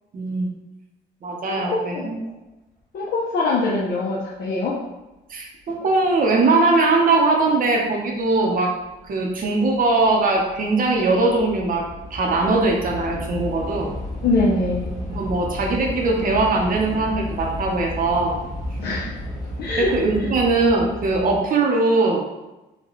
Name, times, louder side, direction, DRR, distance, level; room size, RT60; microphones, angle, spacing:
voice 1, 0.1-0.5 1.2-2.2 5.3-8.7 9.0-11.8 12.1-13.9 15.1-18.4 19.8-22.2, right 3 dB, 50° right, 0 dB, 0.7 m, -20 dB
voice 2, 1.5-2.2 2.9-4.7 14.2-14.9 18.8-19.1 19.6-19.9, left 2 dB, 60° left, -5 dB, 0.6 m, -23 dB
Train / Subway metro underground, 8.3-8.5 8.8-21.4, left 1 dB, 15° left, 1.4 m, -33 dB
4.0 x 2.2 x 3.0 m, 1.0 s
cardioid pair, 115°, 19 cm